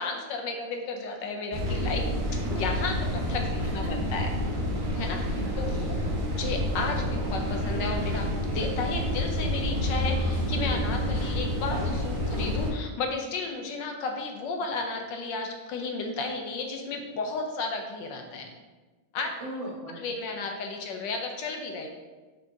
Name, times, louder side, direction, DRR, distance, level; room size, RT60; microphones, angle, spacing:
voice 1, 0.0-2.1 2.3-4.3 5.0-5.7 6.3-8.3 8.5-18.5 19.1-19.3 19.9-21.9, left 3 dB, 75° left, 3 dB, 1.4 m, -33 dB
sound 1, 1.5-12.7, equal, 35° right, 0.9 m, -29 dB
voice 2, 5.0-6.2 11.2-11.4 19.4-20.2, right 1 dB, 75° right, -4 dB, 2.3 m, -40 dB
sound 2, 9.9-13.1, right 1 dB, 20° left, 0.8 m, -36 dB
6.4 x 5.7 x 2.8 m, 1.2 s
omnidirectional pair, 2.1 m